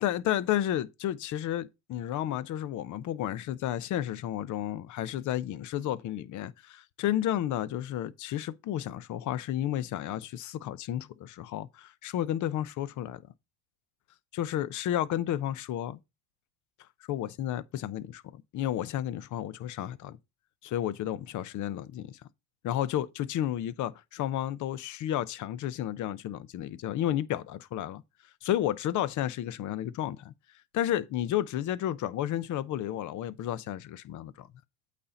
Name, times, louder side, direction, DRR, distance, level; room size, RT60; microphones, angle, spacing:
voice 1, 0.0-13.2 14.3-16.0 17.1-20.2 20.6-22.2 22.6-28.0 28.4-30.3 30.7-34.5, left 12 dB, 45° left, 0.8 m, -32 dB
8.5 x 4.3 x 5.1 m
supercardioid pair, 105°, 43 cm